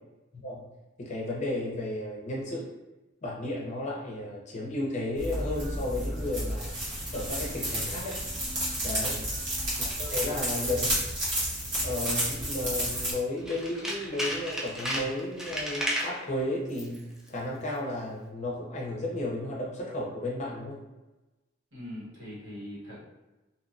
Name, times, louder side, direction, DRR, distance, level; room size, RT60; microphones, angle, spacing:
voice 1, 0.3-0.6 1.0-2.7 3.2-6.7 7.1-8.2 8.8-9.2 9.8-11.0 11.8-20.8, left 1 dB, 40° left, -3 dB, 0.6 m, -33 dB
sound 1, 5.2-13.1, right 1 dB, 75° right, 1.2 m, -31 dB
voice 2, 9.1-9.5 10.2-10.3 21.7-23.0, equal, 90° right, -8 dB, 1.5 m, -42 dB
Tools, 13.4-16.2 16.7-17.0 17.3-17.4, equal, ahead, 0.3 m, -33 dB
2.6 x 2.1 x 2.5 m, 1.1 s
head